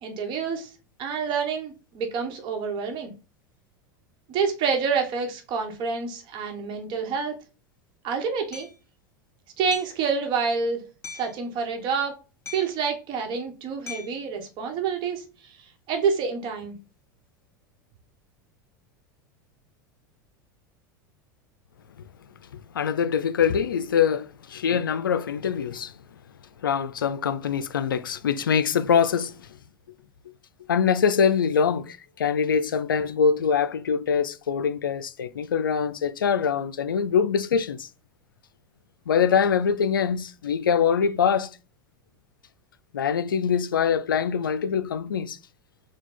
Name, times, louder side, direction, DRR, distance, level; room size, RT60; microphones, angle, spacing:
voice 1, 0.0-0.7 1.0-3.1 4.3-7.4 8.0-8.7 9.6-10.9 11.1-12.1 12.5-15.2 15.9-16.8, right 5 dB, 45° right, 1.1 m, -27 dB
Hammer, 8.5-8.7 9.7-10.0 11.0-11.4 12.5-12.9 13.9-14.2, left 5 dB, 25° left, 1.8 m, -40 dB
voice 2, 22.7-25.9 26.6-29.3 30.7-37.9 39.1-41.5 42.9-45.4, left 7 dB, 85° left, 0.4 m, -23 dB
4.7 x 2.2 x 3.8 m
hypercardioid pair, 85°, 11 cm